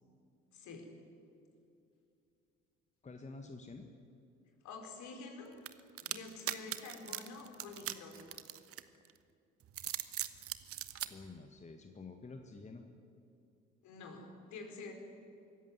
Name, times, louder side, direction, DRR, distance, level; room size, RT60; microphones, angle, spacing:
voice 1, 0.5-0.9 4.6-5.6 6.0-8.4 13.8-14.9, left 4 dB, 50° left, 3 dB, 4.4 m, -48 dB
voice 2, 3.0-3.9 11.1-12.8, left 3 dB, 20° left, 5 dB, 1.7 m, -49 dB
sound 1, 5.7-9.1 9.6-11.1, right 11 dB, 40° right, 1.2 m, -40 dB
25.0 x 14.5 x 9.8 m, 2.6 s
figure-of-eight pair, 55°, 36 cm